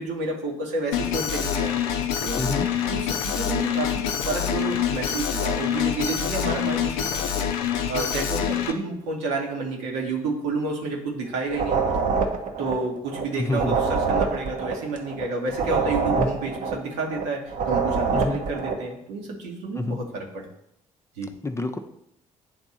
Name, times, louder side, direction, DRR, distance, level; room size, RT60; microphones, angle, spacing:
voice 1, 0.0-1.8 2.2-2.5 2.8-7.5 7.9-11.8 12.6-20.5 21.2-21.3, right 3 dB, 70° right, 0 dB, 1.2 m, -30 dB
Alarm, 0.9-8.7, left 8 dB, 65° left, 0.5 m, -26 dB
voice 2, 2.4-2.7 13.4-13.8 16.2-16.3 18.1-18.4 19.8-20.0 21.4-21.8, left 2 dB, 15° left, 6 dB, 0.6 m, -27 dB
sound 1, 11.5-18.9, right 5 dB, 45° right, 0.9 m, -25 dB
9.2 x 3.5 x 4.2 m, 0.78 s
figure-of-eight pair, 45°, 19 cm